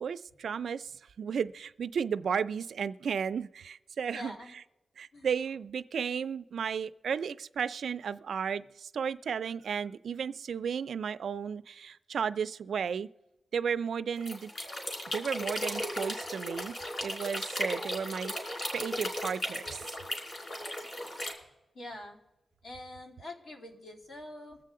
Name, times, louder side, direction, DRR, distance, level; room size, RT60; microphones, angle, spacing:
voice 1, 0.0-0.9 1.2-4.6 5.0-13.1 13.5-14.5 15.1-16.8 17.0-19.8, right 7 dB, 90° right, 13 dB, 0.4 m, -34 dB
voice 2, 4.1-4.5 5.1-5.3 21.7-22.2 22.6-24.6, left 1 dB, 80° left, -1 dB, 2.6 m, -45 dB
sound 1, 14.2-21.3, left 1 dB, 50° left, 2.9 m, -36 dB
22.5 x 7.6 x 3.7 m, 0.99 s
wide cardioid pair, 125°, 0 cm